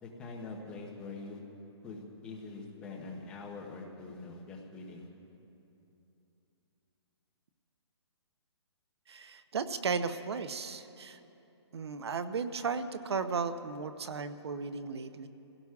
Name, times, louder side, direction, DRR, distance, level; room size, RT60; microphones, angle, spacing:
voice 1, 0.0-1.4 1.8-5.1, left 3 dB, 5° left, -1 dB, 0.6 m, -44 dB
voice 2, 9.1-11.2 11.7-15.3, right 5 dB, 65° right, 11 dB, 0.7 m, -35 dB
27.0 x 17.0 x 2.4 m, 2.8 s
hypercardioid pair, 175°, 15 cm